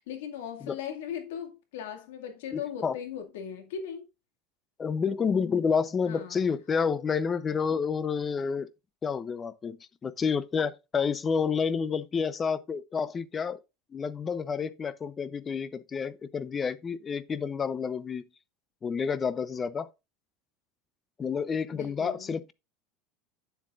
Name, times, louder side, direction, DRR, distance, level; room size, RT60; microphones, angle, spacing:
voice 1, 0.1-4.1 6.1-6.4 21.7-22.3, left 8 dB, 90° left, 2.1 m, -38 dB
voice 2, 2.5-3.0 4.8-8.7 9.0-13.6 13.9-18.2 18.8-19.9 21.2-22.5, left 6 dB, 20° left, 0.6 m, -29 dB
9.5 x 7.5 x 2.5 m
supercardioid pair, 150°, 0 cm